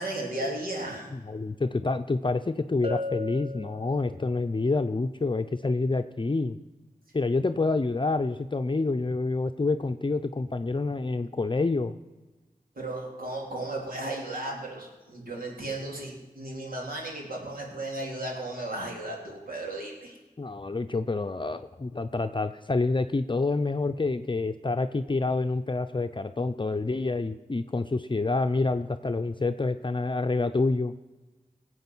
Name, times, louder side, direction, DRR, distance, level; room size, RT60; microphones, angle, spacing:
voice 1, 0.0-1.1 12.8-20.2, right 2 dB, 80° right, -1 dB, 3.6 m, -35 dB
voice 2, 1.2-6.6 7.1-12.0 20.4-30.9, left 3 dB, 35° left, 8 dB, 0.6 m, -27 dB
Bell, 2.8-4.5, left 2 dB, 40° right, 1.3 m, -36 dB
18.5 x 7.9 x 6.1 m, 1.2 s
cardioid pair, 45°, 15 cm